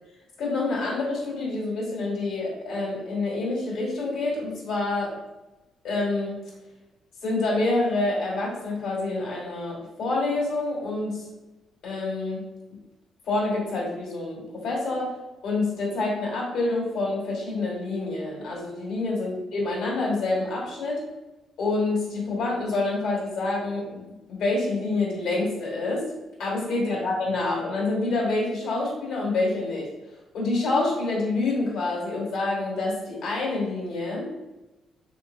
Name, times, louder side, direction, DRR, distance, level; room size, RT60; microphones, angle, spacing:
voice 1, 0.4-5.2 5.8-6.4 7.2-11.3 11.8-12.4 13.3-15.1 15.4-21.0 21.6-24.0 24.3-26.0 26.4-29.9 30.3-34.3, left 2 dB, 80° left, -3 dB, 1.3 m, -27 dB
3.4 x 2.8 x 2.6 m, 1.0 s
cardioid pair, 90°, 0 cm